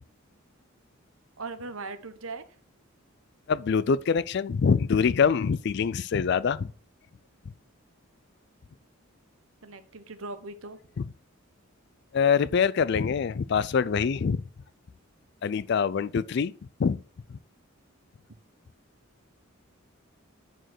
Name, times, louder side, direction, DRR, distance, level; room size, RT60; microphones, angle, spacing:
voice 1, 1.4-2.4 9.6-10.8, right 3 dB, 75° right, 1.0 m, -39 dB
voice 2, 3.5-6.7 11.0-11.1 12.1-14.4 15.4-16.5 16.8-17.0 17.3-17.4, left 6 dB, 50° left, 0.3 m, -24 dB
8.9 x 4.6 x 6.1 m
head